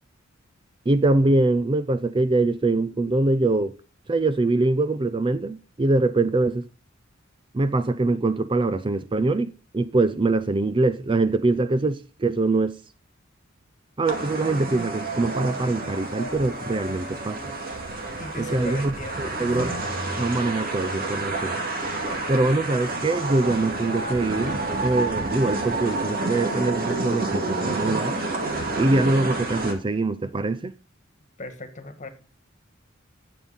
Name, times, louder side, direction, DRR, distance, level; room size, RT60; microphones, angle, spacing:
voice 1, 0.9-3.7 4.1-6.7 7.5-12.8 14.0-17.4 18.4-18.9 19.2-19.8 20.1-21.5 22.3-28.2 28.8-30.7, right 2 dB, 25° right, 0.5 m, -23 dB
sound 1, 14.1-29.7, right 2 dB, 45° right, 2.2 m, -29 dB
voice 2, 18.2-19.9 31.4-32.1, left 2 dB, 35° left, 1.6 m, -39 dB
10.5 x 7.4 x 4.1 m
head